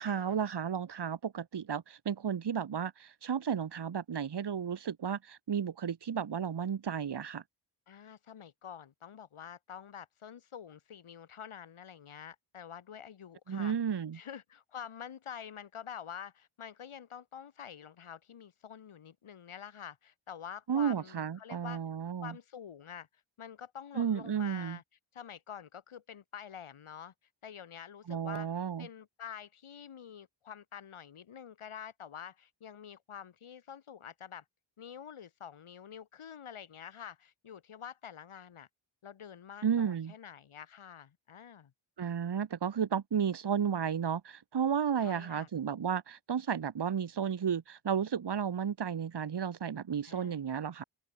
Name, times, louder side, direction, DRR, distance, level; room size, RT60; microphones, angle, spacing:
voice 1, 0.0-7.4 13.5-14.2 20.7-22.3 23.9-24.8 28.1-28.9 39.6-40.1 42.0-50.8, right 7 dB, 55° right, 1.8 m, -33 dB
voice 2, 7.9-21.8 22.2-23.1 23.4-24.8 25.1-27.1 27.4-28.5 28.8-34.4 34.8-38.7 39.0-41.7 45.0-45.5 50.0-50.4, left 8 dB, 90° left, 2.9 m, -47 dB
open air
wide cardioid pair, 170°, 48 cm